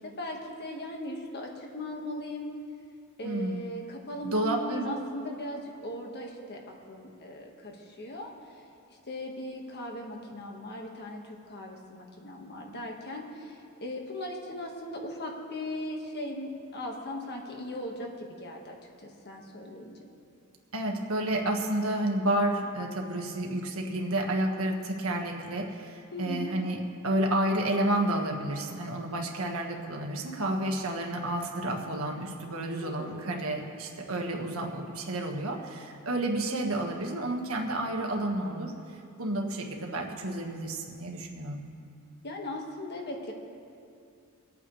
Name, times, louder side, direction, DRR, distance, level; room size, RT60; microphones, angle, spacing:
voice 1, 0.0-2.5 3.2-8.3 8.9-20.0 26.1-26.5 32.8-33.3 42.2-43.3, left 1 dB, 50° left, 1 dB, 1.6 m, -38 dB
voice 2, 3.2-3.7 4.2-5.0 20.7-26.8 27.0-38.7 39.2-41.7, right 1 dB, 70° right, 1 dB, 1.6 m, -30 dB
25.0 x 8.8 x 3.3 m, 2.5 s
head